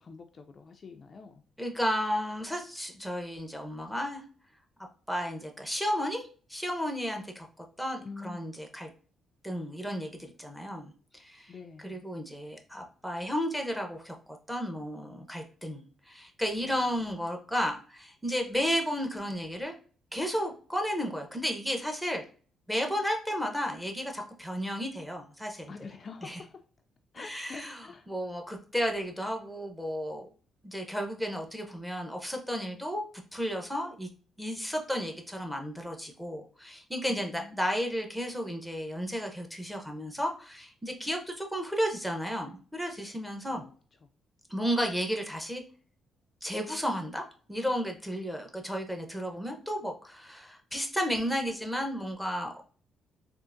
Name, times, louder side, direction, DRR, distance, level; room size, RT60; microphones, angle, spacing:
voice 1, 0.0-1.4 8.0-8.4 11.5-12.1 16.6-16.8 25.7-26.6 27.1-28.1 37.1-37.6 43.5-43.7, left 4 dB, 45° left, 0.3 m, -46 dB
voice 2, 1.6-4.2 5.1-7.5 7.8-8.9 9.4-11.5 11.8-14.1 14.5-19.7 20.1-22.2 22.7-25.7 26.2-26.4 27.2-30.3 30.6-33.0 33.3-34.1 34.4-43.6 44.5-45.6 46.4-47.2 47.5-52.6, equal, ahead, 0.8 m, -33 dB
3.7 x 2.5 x 2.5 m
cardioid pair, 90°, 0 cm